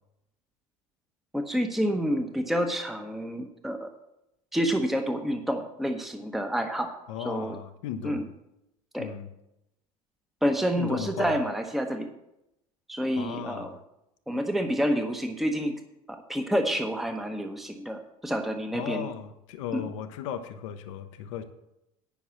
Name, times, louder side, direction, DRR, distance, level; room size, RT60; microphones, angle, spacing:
voice 1, 1.3-3.9 4.5-6.9 7.2-7.5 8.0-8.2 8.9-9.1 10.4-12.1 12.9-13.7 14.3-15.8 16.1-19.1 19.7-19.8, equal, ahead, 6 dB, 0.9 m, -28 dB
voice 2, 7.1-8.3 9.0-9.3 10.8-11.4 13.2-13.8 18.7-21.4, left 9 dB, 60° left, 8 dB, 0.8 m, -36 dB
10.5 x 5.9 x 7.1 m, 0.87 s
figure-of-eight pair, 70°, 19 cm